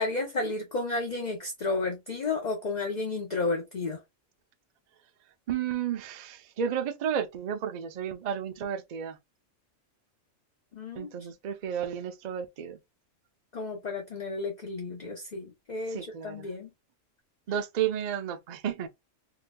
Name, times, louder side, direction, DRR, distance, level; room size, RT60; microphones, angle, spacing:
voice 1, 0.0-4.0 10.7-11.1 13.5-16.7, left 3 dB, 40° left, 0.8 m, -32 dB
voice 2, 5.5-9.2 10.9-12.8 15.9-16.5 17.5-18.9, right 8 dB, 55° right, 0.5 m, -32 dB
3.9 x 2.6 x 2.2 m
omnidirectional pair, 1.3 m